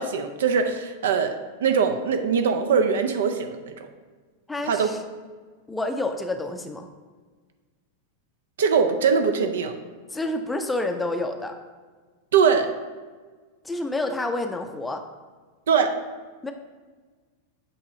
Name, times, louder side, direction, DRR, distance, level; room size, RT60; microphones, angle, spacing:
voice 1, 0.0-3.7 4.6-4.9 8.6-9.7 12.3-12.7 15.7-15.9, right 6 dB, 60° right, 7 dB, 0.5 m, -22 dB
voice 2, 4.5-5.0 5.7-6.9 10.1-11.5 13.6-15.0 16.4-16.5, left 2 dB, 10° left, 5 dB, 0.5 m, -28 dB
7.9 x 2.9 x 4.8 m, 1.4 s
figure-of-eight pair, 90°, 0 cm